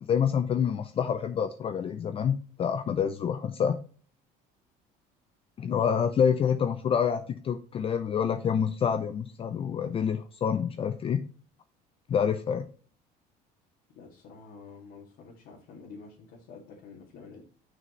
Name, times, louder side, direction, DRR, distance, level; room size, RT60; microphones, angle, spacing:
voice 1, 0.0-3.8 5.6-11.2 12.1-12.7, left 7 dB, 35° left, 9 dB, 0.5 m, -27 dB
voice 2, 13.9-17.4, left 4 dB, 65° left, -3 dB, 2.2 m, -48 dB
6.9 x 6.2 x 3.1 m, 0.42 s
cardioid pair, 120°, 17 cm